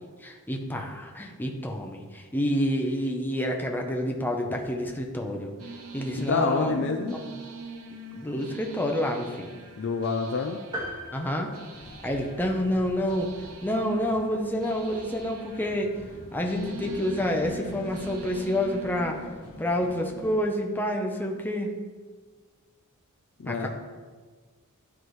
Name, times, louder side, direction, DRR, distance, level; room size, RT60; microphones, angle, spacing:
voice 1, 0.2-5.5 5.9-6.7 7.3-7.4 8.1-9.6 11.1-11.5 12.0-13.3 13.6-16.0 16.3-19.2 19.6-21.7 23.5-23.7, equal, 10° left, 1 dB, 0.7 m, -28 dB
sound 1, 5.6-19.3, right 3 dB, 75° right, 0.9 m, -44 dB
voice 2, 6.2-7.1 9.8-10.6 23.4-23.7, left 4 dB, 60° left, 4 dB, 0.5 m, -27 dB
sound 2, 10.7-12.5, equal, 20° right, 1.6 m, -38 dB
sound 3, 11.7-20.3, left 1 dB, 75° left, 1.3 m, -45 dB
11.5 x 4.7 x 3.1 m, 1.5 s
head